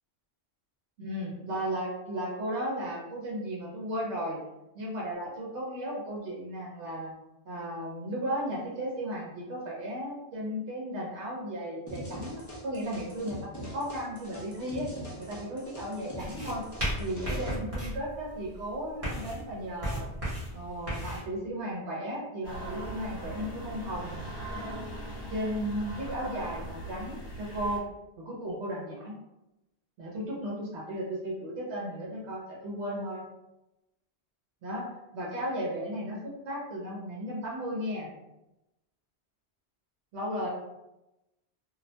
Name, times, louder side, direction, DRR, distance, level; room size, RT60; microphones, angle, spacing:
voice 1, 1.0-4.4 4.7-7.1 7.5-14.9 15.2-16.7 17.0-20.1 20.5-24.2 25.3-27.8 28.2-29.1 30.0-33.2 34.6-38.1 40.1-40.5, equal, 80° right, -5 dB, 0.9 m, -35 dB
sound 1, 11.9-17.5, equal, 25° left, 0.4 m, -42 dB
sound 2, 16.2-21.2, equal, 35° right, 0.8 m, -35 dB
sound 3, 22.4-27.8, right 1 dB, 60° left, 0.9 m, -40 dB
2.3 x 2.1 x 2.6 m, 0.95 s
omnidirectional pair, 1.1 m